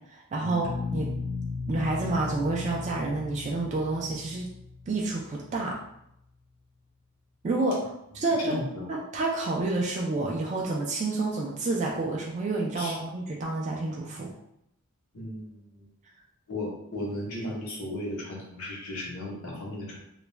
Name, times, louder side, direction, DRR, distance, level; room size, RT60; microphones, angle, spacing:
voice 1, 0.1-1.1 1.7-4.5 4.9-5.8 7.4-8.6 8.9-14.3, right 2 dB, 35° right, -2 dB, 0.3 m, -29 dB
sound 1, 0.6-5.5, left 4 dB, 35° left, 0.5 m, -36 dB
voice 2, 8.4-8.8 12.7-13.0 15.1-15.9 16.5-20.0, left 1 dB, 70° left, -3 dB, 0.9 m, -35 dB
2.3 x 2.1 x 3.1 m, 0.78 s
head